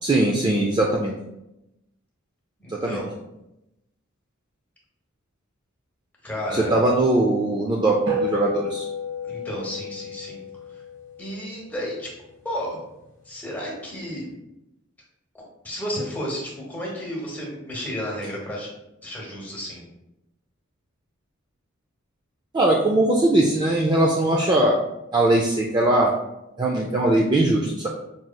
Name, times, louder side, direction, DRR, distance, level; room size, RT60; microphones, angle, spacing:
voice 1, 0.0-1.1 2.7-3.0 6.5-8.9 22.5-24.8 25.1-26.1 26.6-27.9, right 2 dB, 20° right, -2 dB, 0.3 m, -20 dB
voice 2, 2.6-3.2 6.2-6.7 9.2-10.4 11.2-12.1 12.4-12.8 13.2-14.3 15.6-18.7 19.0-19.8, equal, 10° left, -4 dB, 1.0 m, -32 dB
sound 1, 8.1-12.7, left 1 dB, 75° right, 1.3 m, -32 dB
5.3 x 3.0 x 2.2 m, 0.90 s
head